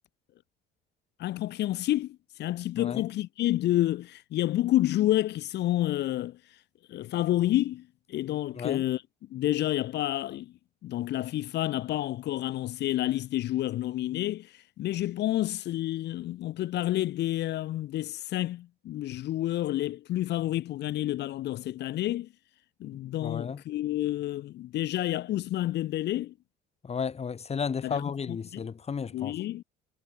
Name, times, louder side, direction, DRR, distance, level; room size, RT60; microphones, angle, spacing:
voice 1, 1.2-6.4 6.9-9.0 9.3-10.5 10.8-22.3 22.8-26.3 27.8-28.0 28.3-28.6 29.1-29.6, left 14 dB, 65° left, 3.6 m, -29 dB
voice 2, 22.9-23.6 26.8-29.4, left 6 dB, 35° left, 3.5 m, -33 dB
supercardioid pair, 85°, 19 cm